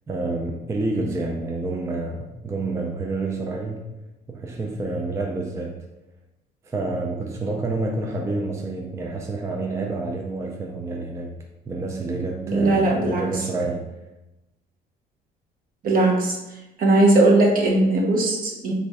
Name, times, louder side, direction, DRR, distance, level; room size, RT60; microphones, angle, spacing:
voice 1, 0.1-3.8 4.3-5.7 6.6-11.3 11.7-13.8, right 2 dB, 15° right, 1 dB, 0.3 m, -28 dB
voice 2, 12.5-13.2 15.8-16.4 16.8-18.7, right 2 dB, 55° right, -1 dB, 0.9 m, -18 dB
3.1 x 2.6 x 3.4 m, 0.98 s
cardioid pair, 110°, 17 cm